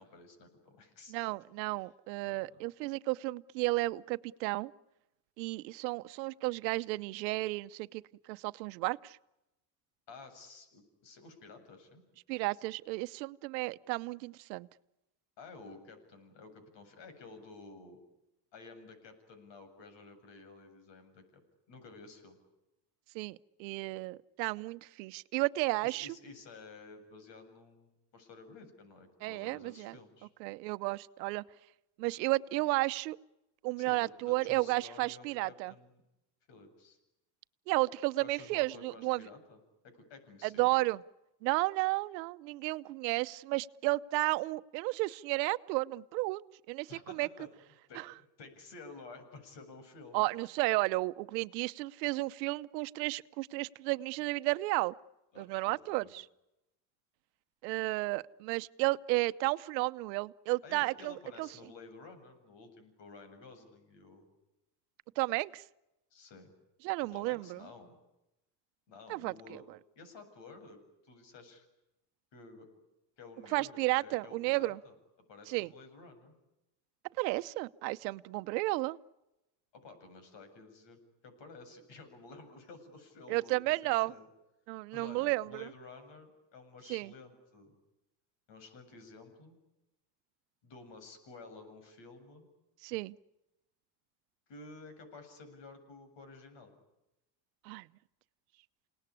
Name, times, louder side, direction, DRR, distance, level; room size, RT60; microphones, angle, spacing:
voice 1, 0.0-1.2 2.2-2.5 10.1-12.0 15.4-18.0 18.5-21.2 21.7-22.4 25.8-30.3 33.8-36.0 36.5-37.0 38.2-40.7 46.9-47.5 47.9-50.2 55.3-56.1 60.6-64.3 66.1-66.5 67.1-68.0 68.9-69.7 70.0-71.7 72.3-72.7 73.2-74.9 75.3-76.3 79.7-81.0 81.2-84.3 84.9-87.8 88.5-89.5 90.6-92.5 94.5-96.7, left 3 dB, 60° left, 9 dB, 7.8 m, -52 dB
voice 2, 1.1-4.7 5.4-8.0 8.3-9.2 12.3-14.7 23.1-26.1 29.2-30.0 30.4-31.4 32.0-33.2 33.6-35.7 37.7-39.2 40.4-41.0 41.4-47.3 47.9-48.1 50.1-54.9 55.4-56.3 57.6-61.5 65.2-65.6 66.8-67.6 69.1-69.6 73.5-74.8 75.5-75.7 77.2-79.0 83.3-84.1 84.7-85.7 86.9-87.1 92.8-93.1 97.6-97.9, right 22 dB, 90° right, 16 dB, 0.9 m, -33 dB
28.5 x 19.0 x 9.9 m, 0.94 s
supercardioid pair, 90°, 50 cm